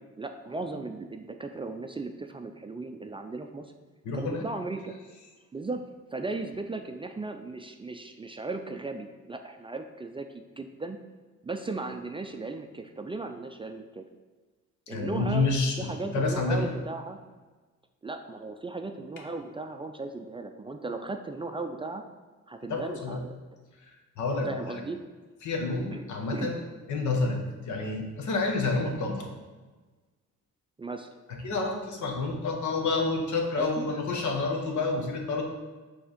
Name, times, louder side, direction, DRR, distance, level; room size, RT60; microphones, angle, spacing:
voice 1, 0.0-3.7 4.1-4.9 5.5-5.8 6.1-10.3 10.6-11.0 11.4-14.0 14.9-15.5 15.8-17.2 18.0-22.0 22.5-23.4 24.5-25.0 25.9-26.0 26.3-26.5 30.8-31.1 33.6-33.9, right 3 dB, 20° right, 5 dB, 0.4 m, -36 dB
voice 2, 4.0-4.4 14.9-15.7 16.0-16.7 22.7-23.2 23.8-24.6 25.4-26.6 26.9-27.4 27.7-29.3 31.3-35.4, left 3 dB, 75° left, 2 dB, 1.2 m, -29 dB
6.1 x 3.5 x 5.1 m, 1.3 s
cardioid pair, 90°, 30 cm